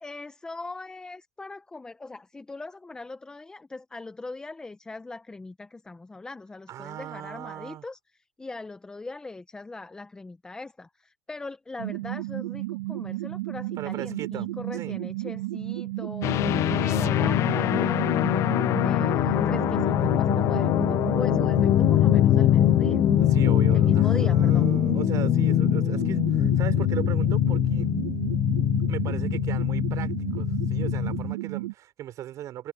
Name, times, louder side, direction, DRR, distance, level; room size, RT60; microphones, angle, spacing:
voice 1, 0.0-16.3 16.8-18.2 18.8-23.0 23.7-24.7, left 3 dB, 10° left, 0.8 m, -40 dB
voice 2, 6.7-7.8 13.8-14.5 14.7-15.0 23.2-27.9 28.9-32.7, right 12 dB, 35° right, 5.4 m, -37 dB
sound 1, 11.8-31.7, right 19 dB, 90° right, 1.8 m, -33 dB
sound 2, 16.2-31.3, left 14 dB, 35° left, 0.3 m, -23 dB
supercardioid pair, 140°, 9 cm